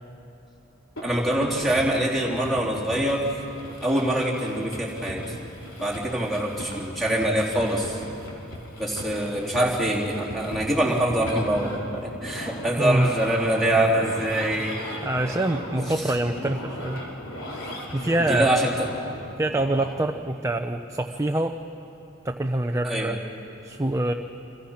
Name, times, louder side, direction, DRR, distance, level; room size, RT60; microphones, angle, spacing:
sound 1, 1.0-19.9, left 1 dB, 75° left, 3.6 m, -37 dB
voice 1, 1.0-3.4 3.8-5.4 5.8-8.0 8.8-14.8 15.3-15.4 16.0-16.1 18.3-18.9 22.8-23.1, right 1 dB, ahead, -3 dB, 3.5 m, -24 dB
voice 2, 12.8-13.1 15.0-17.0 17.9-18.5 19.4-21.5 22.2-23.2 23.6-24.1, right 1 dB, 15° right, 5 dB, 0.7 m, -25 dB
29.5 x 26.5 x 5.8 m, 3.0 s
head